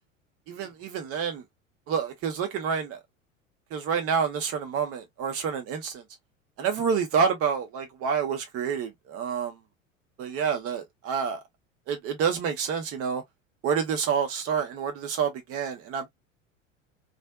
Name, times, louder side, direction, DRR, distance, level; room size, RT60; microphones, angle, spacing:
voice 1, 0.5-1.4 1.9-3.0 3.7-6.0 6.6-9.6 10.2-11.4 11.9-13.2 13.6-16.1, right 6 dB, 35° right, 1.2 m, -28 dB
3.2 x 2.5 x 2.3 m
figure-of-eight pair, 80°, 39 cm